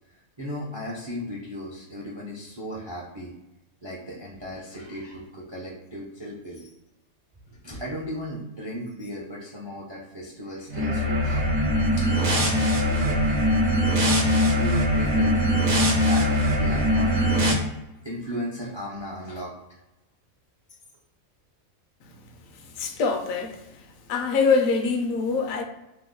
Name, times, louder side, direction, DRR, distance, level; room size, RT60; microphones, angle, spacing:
voice 1, 0.1-3.3 3.8-6.7 7.5-11.5 12.1-13.3 13.6-13.7 14.3-15.4 15.9-17.5 18.0-19.8, left 1 dB, 40° right, -4 dB, 0.4 m, -36 dB
sound 1, 10.7-17.5, equal, 60° right, 0.9 m, -22 dB
voice 2, 22.5-23.6 24.1-25.6, left 4 dB, 75° left, 5 dB, 1.0 m, -24 dB
3.0 x 2.1 x 3.6 m, 0.92 s
omnidirectional pair, 1.4 m